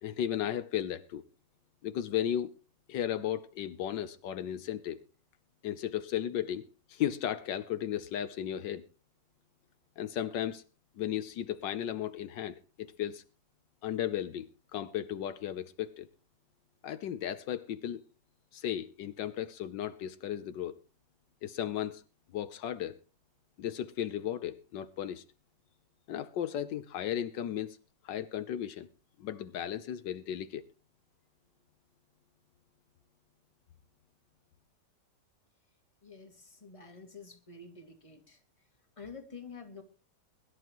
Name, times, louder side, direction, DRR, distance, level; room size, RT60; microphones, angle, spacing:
voice 1, 0.0-1.2 1.8-2.5 2.9-5.0 5.6-6.6 6.9-8.8 10.0-10.6 11.0-13.2 13.8-16.1 16.8-18.0 18.5-20.8 21.4-22.0 22.3-22.9 23.6-25.2 26.1-27.8 28.0-28.9 29.2-30.6, left 10 dB, 80° left, 1.5 m, -35 dB
voice 2, 36.0-38.4 39.0-39.8, left 4 dB, 15° left, 2.2 m, -48 dB
22.0 x 12.0 x 3.0 m
omnidirectional pair, 1.9 m